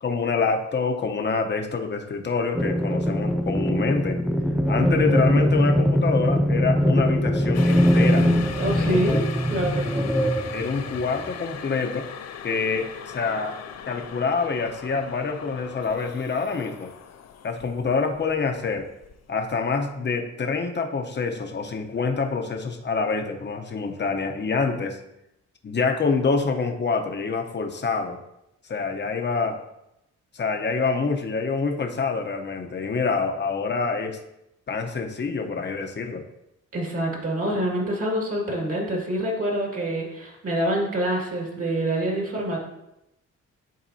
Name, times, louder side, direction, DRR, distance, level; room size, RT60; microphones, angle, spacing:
voice 1, 0.0-4.2 4.7-8.3 8.8-9.0 10.5-12.0 12.4-13.6 13.9-16.9 17.4-18.9 19.3-25.0 25.6-28.2 28.7-29.6 30.3-34.2 34.7-36.2, left 4 dB, 35° left, 4 dB, 0.8 m, -26 dB
sound 1, 2.5-11.3, equal, ahead, 0.3 m, -22 dB
sound 2, 7.5-19.6 20.0-20.1, left 8 dB, 55° left, 0.5 m, -39 dB
voice 2, 8.6-9.2 9.5-10.1 36.7-42.6, right 1 dB, 50° right, -1 dB, 2.1 m, -26 dB
10.5 x 4.0 x 2.7 m, 0.86 s
cardioid pair, 85°, 31 cm